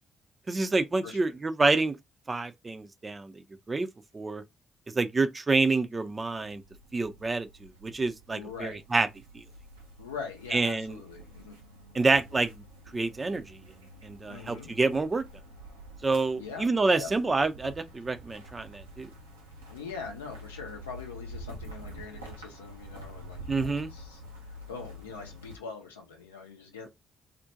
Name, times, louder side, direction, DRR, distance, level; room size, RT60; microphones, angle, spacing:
voice 1, 0.5-2.0 2.3-3.3 3.7-3.9 4.1-4.4 4.9-6.6 6.9-9.1 9.3-9.4 10.5-11.0 11.9-12.6 12.9-13.6 14.0-15.2 16.0-19.1 23.5-23.9, right 3 dB, 30° right, 0.4 m, -27 dB
sound 1, 5.9-25.6, equal, 85° right, 0.5 m, -47 dB
voice 2, 8.3-8.8 10.0-11.6 11.9-12.1 14.3-14.7 16.4-17.1 19.7-24.2 24.7-26.9, left 5 dB, 80° left, 0.5 m, -42 dB
2.4 x 2.1 x 2.7 m
figure-of-eight pair, 40°, 0 cm